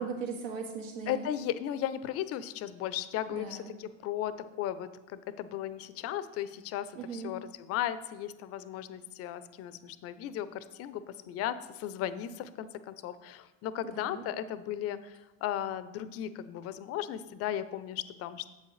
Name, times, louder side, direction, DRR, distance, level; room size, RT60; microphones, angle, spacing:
voice 1, 0.0-1.3 3.3-3.8 7.0-7.3 13.9-14.3, right 5 dB, 75° right, 0 dB, 1.7 m, -38 dB
voice 2, 1.1-18.5, left 11 dB, 40° left, 14 dB, 0.5 m, -36 dB
8.4 x 7.6 x 3.2 m, 1.1 s
hypercardioid pair, 105°, 39 cm